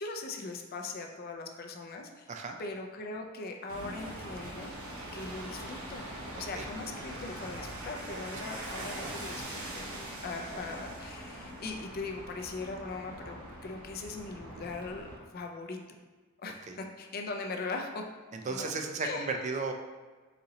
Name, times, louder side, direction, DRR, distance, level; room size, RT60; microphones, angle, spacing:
voice 1, 0.0-2.3 2.6-4.8 5.1-6.1 6.3-9.9 10.2-15.1 15.3-15.8 16.4-18.0 18.4-18.7 19.0-19.4, left 3 dB, 45° left, 3 dB, 0.4 m, -40 dB
sound 1, 3.7-15.2, right 1 dB, 75° right, 0.9 m, -42 dB
voice 2, 8.1-9.1 10.5-10.7 16.7-16.8 18.3-19.7, right 4 dB, 35° right, 4 dB, 0.3 m, -36 dB
4.1 x 3.9 x 2.7 m, 1.4 s
head